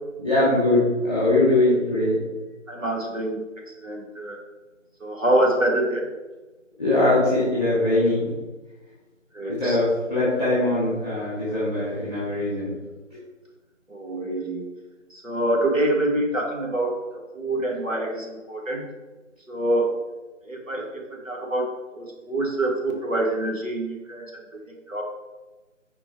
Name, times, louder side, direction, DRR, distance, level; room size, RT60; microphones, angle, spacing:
voice 1, 0.2-2.2 6.8-8.3 9.6-12.7 13.1-13.2, left 2 dB, 5° right, -11 dB, 1.5 m, -21 dB
voice 2, 2.7-3.4 3.8-4.4 5.0-6.1 9.3-9.8 13.9-14.6 15.1-18.9 19.5-20.0 20.5-24.6 24.9-25.0, right 1 dB, 75° right, 0 dB, 2.0 m, -26 dB
7.7 x 4.4 x 4.7 m, 1.2 s
figure-of-eight pair, 160°, 39 cm